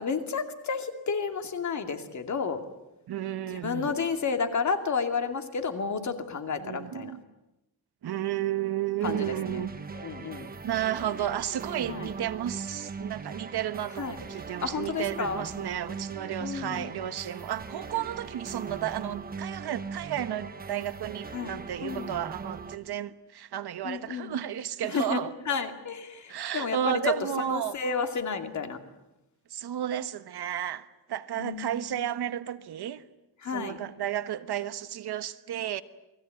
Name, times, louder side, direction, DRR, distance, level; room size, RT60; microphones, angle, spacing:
voice 1, 0.0-2.6 3.5-7.1 9.0-9.6 9.9-10.5 11.9-12.1 14.0-14.2 14.6-15.4 16.4-16.9 21.3-22.2 23.8-24.4 24.8-27.1 27.5-28.8 31.4-32.1 33.4-33.8, left 5 dB, 45° left, 2.6 m, -31 dB
voice 2, 3.1-3.9 6.6-7.2 8.0-9.7 10.6-25.3 26.3-27.7 29.5-33.0 33.5-35.8, right 11 dB, 75° right, 1.3 m, -32 dB
sound 1, 9.0-22.8, right 5 dB, 20° right, 1.3 m, -40 dB
29.0 x 20.5 x 9.2 m
wide cardioid pair, 170°, 39 cm